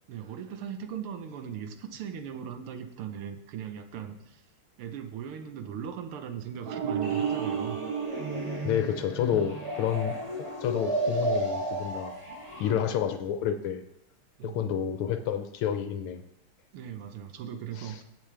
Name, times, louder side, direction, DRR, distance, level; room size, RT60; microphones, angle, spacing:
voice 1, 0.1-4.4 4.8-7.8 14.4-14.8 16.7-18.0, right 8 dB, 85° right, 7 dB, 1.8 m, -39 dB
sound 1, 6.7-9.6, right 7 dB, 60° right, 1.2 m, -32 dB
sound 2, 7.0-12.7, right 1 dB, 15° right, 2.3 m, -33 dB
voice 2, 8.6-12.1 12.6-13.8 14.4-16.2 17.8-17.9, left 9 dB, 85° left, 7 dB, 1.6 m, -29 dB
17.5 x 7.3 x 3.3 m, 0.84 s
omnidirectional pair, 2.3 m